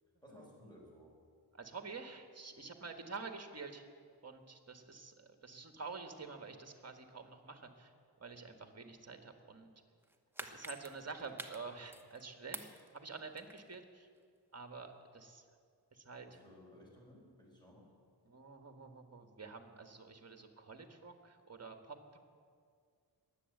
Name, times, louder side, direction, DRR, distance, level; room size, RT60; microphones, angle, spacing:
voice 1, 0.2-1.1 16.3-17.9, equal, 10° left, -3 dB, 5.0 m, -58 dB
voice 2, 1.5-3.8 4.2-7.9 8.2-9.7 10.4-14.1 14.5-15.4 15.9-16.3 18.3-22.2, right 4 dB, 35° right, 6 dB, 1.5 m, -49 dB
sound 1, 10.0-12.2 12.5-13.8 14.2-14.3, right 1 dB, 5° right, 1.0 m, -48 dB
21.0 x 8.2 x 7.8 m, 2.1 s
wide cardioid pair, 110°, 41 cm